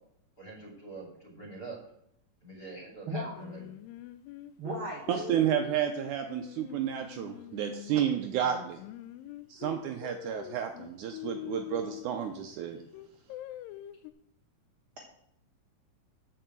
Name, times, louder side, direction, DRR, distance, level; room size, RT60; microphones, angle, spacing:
voice 1, 0.4-1.8 2.4-3.6, right 3 dB, 30° left, -1 dB, 3.1 m, -44 dB
Singing, 3.4-8.0 8.4-12.4 12.9-14.1, left 13 dB, 85° left, 2.2 m, -44 dB
voice 2, 4.6-5.0, right 1 dB, 55° right, 0 dB, 1.5 m, -35 dB
voice 3, 5.1-8.8 9.5-12.8, right 9 dB, 80° right, 5 dB, 1.9 m, -31 dB
6.8 x 6.7 x 7.6 m, 0.75 s
omnidirectional pair, 4.0 m